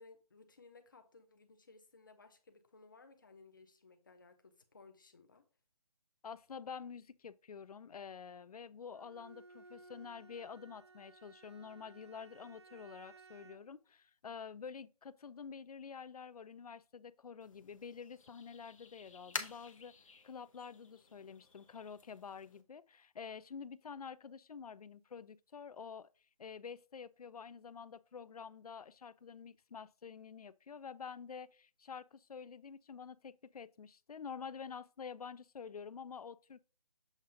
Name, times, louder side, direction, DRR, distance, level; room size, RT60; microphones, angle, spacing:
voice 1, 0.0-5.4, left 3 dB, 30° left, 0.7 m, -60 dB
voice 2, 6.2-19.9 20.2-26.1 26.4-36.6, left 6 dB, 70° left, 0.4 m, -48 dB
Bowed string instrument, 8.9-13.8, right 3 dB, 45° right, 0.4 m, -59 dB
sound 1, 17.4-22.6, left 4 dB, 55° left, 1.0 m, -49 dB
7.2 x 2.6 x 5.2 m
hypercardioid pair, 175°, 20 cm